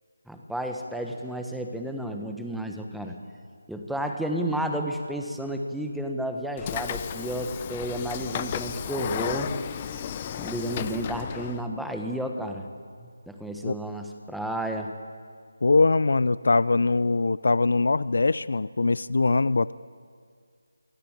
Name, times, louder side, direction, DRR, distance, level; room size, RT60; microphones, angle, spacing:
voice 1, 0.3-3.2 3.7-9.5 10.4-12.7 13.3-14.9, right 1 dB, ahead, 3 dB, 1.3 m, -32 dB
Train / Sliding door, 6.6-11.6, left 9 dB, 20° left, 0.9 m, -33 dB
voice 2, 15.6-19.7, left 3 dB, 65° left, 19 dB, 0.6 m, -22 dB
26.5 x 23.5 x 8.9 m, 2.1 s
figure-of-eight pair, 170°, 0 cm